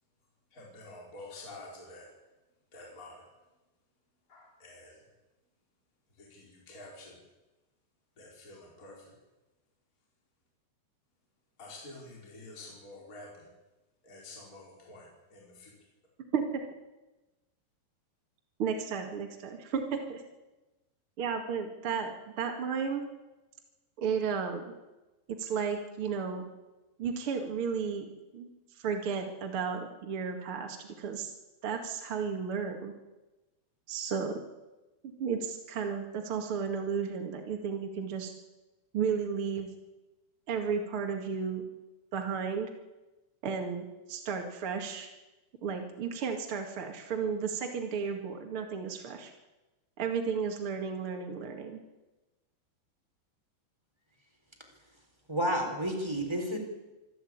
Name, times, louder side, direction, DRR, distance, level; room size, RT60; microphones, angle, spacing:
voice 1, 0.5-2.1 2.7-3.3 4.3-5.1 6.1-7.2 8.2-9.2 11.6-13.5 14.0-15.8, left 2 dB, 20° left, -2 dB, 4.7 m, -49 dB
voice 2, 18.6-20.2 21.2-23.0 24.0-24.6 25.4-26.5 27.0-31.3 31.6-32.9 33.9-34.4 35.2-38.3 38.9-39.7 40.5-41.6 42.1-42.7 43.4-45.1 45.6-49.3 50.0-51.8, right 6 dB, 45° right, 3 dB, 2.1 m, -33 dB
voice 3, 55.3-56.6, equal, 5° right, 2 dB, 3.4 m, -30 dB
25.5 x 12.5 x 8.7 m, 1.1 s
omnidirectional pair, 4.9 m